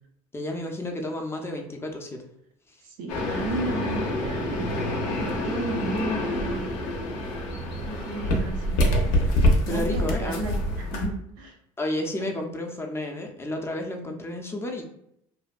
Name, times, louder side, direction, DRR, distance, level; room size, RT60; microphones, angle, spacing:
voice 1, 0.3-2.2 2.7-2.8 9.7-10.4 11.8-14.8, left 1 dB, 15° left, 2 dB, 0.4 m, -31 dB
voice 2, 2.8-6.7 7.9-8.8 9.7-11.5 12.2-12.3, right 2 dB, 80° right, 2 dB, 0.6 m, -34 dB
sound 1, 3.1-11.1, left 1 dB, 85° left, 0.5 m, -26 dB
sound 2, 3.2-9.4, right 1 dB, 25° right, 0.6 m, -41 dB
2.6 x 2.1 x 2.3 m, 0.75 s
supercardioid pair, 85°, 15 cm